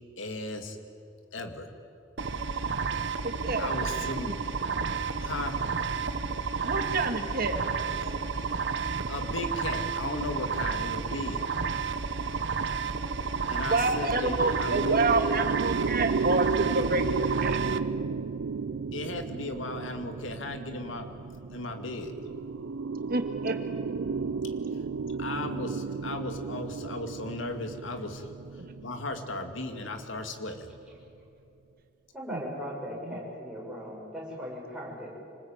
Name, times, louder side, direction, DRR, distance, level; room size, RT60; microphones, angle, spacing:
voice 1, 0.2-0.8 1.3-1.7 3.6-4.3 5.2-5.6 9.1-11.4 13.5-15.0 18.9-21.1 21.5-22.1 25.2-28.3 28.8-30.7, left 2 dB, 80° left, 6 dB, 2.3 m, -36 dB
sound 1, 2.2-17.8, right 5 dB, 65° right, 0.9 m, -31 dB
voice 2, 3.2-3.7 4.2-4.3 6.6-7.6 13.7-17.6 23.1-23.6 28.6-28.7 32.3-32.4 32.9-33.2, right 3 dB, 50° right, 6 dB, 2.0 m, -28 dB
sound 2, 13.2-30.7, right 5 dB, 85° right, 0.5 m, -34 dB
voice 3, 32.1-35.1, equal, 5° right, -5 dB, 6.8 m, -38 dB
26.5 x 20.0 x 8.9 m, 2.9 s
head